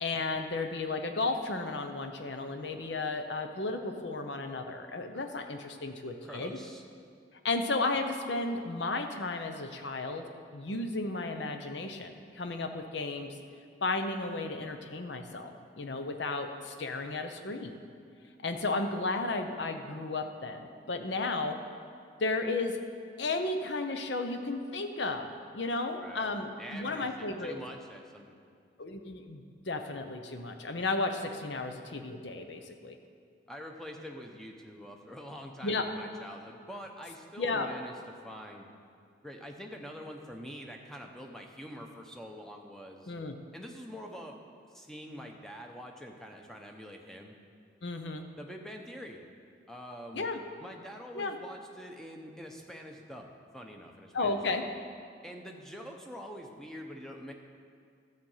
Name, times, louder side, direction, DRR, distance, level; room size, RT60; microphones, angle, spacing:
voice 1, 0.0-6.6 7.4-10.2 10.5-13.3 13.8-17.7 18.4-21.6 22.2-22.8 23.2-25.3 25.5-27.6 28.8-33.0 35.6-35.8 37.4-37.7 43.1-43.4 47.8-48.2 50.1-50.4 51.1-51.4 54.1-54.6, left 3 dB, 70° left, 6 dB, 0.8 m, -33 dB
voice 2, 6.2-6.8 26.0-26.3 26.6-28.6 33.5-37.9 38.2-38.7 39.2-43.1 43.5-44.4 44.7-47.3 48.4-49.2 49.7-50.3 50.6-54.7 55.2-57.3, equal, ahead, 2 dB, 0.8 m, -45 dB
12.0 x 7.6 x 5.6 m, 2.3 s
head